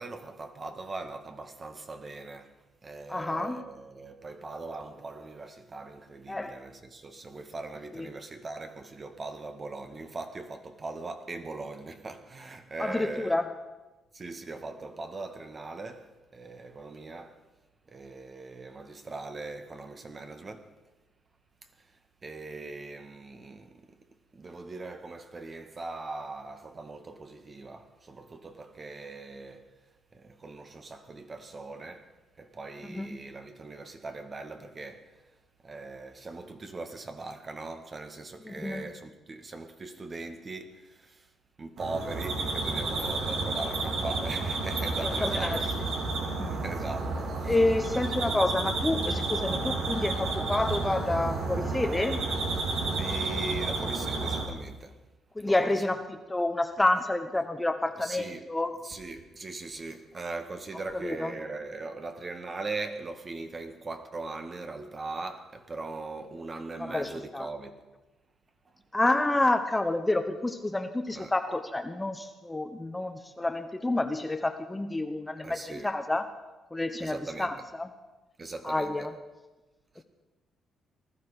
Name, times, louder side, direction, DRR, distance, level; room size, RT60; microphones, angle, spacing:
voice 1, 0.0-2.5 2.8-13.4 14.1-17.4 17.9-20.7 21.8-21.9 22.2-24.0 24.3-29.6 30.1-32.1 32.4-35.1 35.6-41.3 41.6-45.8 46.5-47.6 53.0-55.0 55.5-55.8 58.0-58.5 58.8-67.8 71.1-71.3 75.4-75.9 77.0-77.6 78.4-79.1 79.9-80.0, right 3 dB, 35° right, 1.7 m, -40 dB
voice 2, 3.1-3.6 6.3-6.6 7.9-8.1 12.8-13.5 32.9-33.1 38.5-38.9 45.0-45.7 46.2-46.7 47.5-52.3 55.4-56.0 56.3-58.7 61.0-61.3 66.8-67.5 68.9-76.3 76.7-77.9 78.6-79.1, left 2 dB, 15° left, 1.1 m, -29 dB
sound 1, 41.8-54.5, right 3 dB, 75° right, 3.0 m, -31 dB
20.0 x 13.0 x 5.0 m
cardioid pair, 90°, 0 cm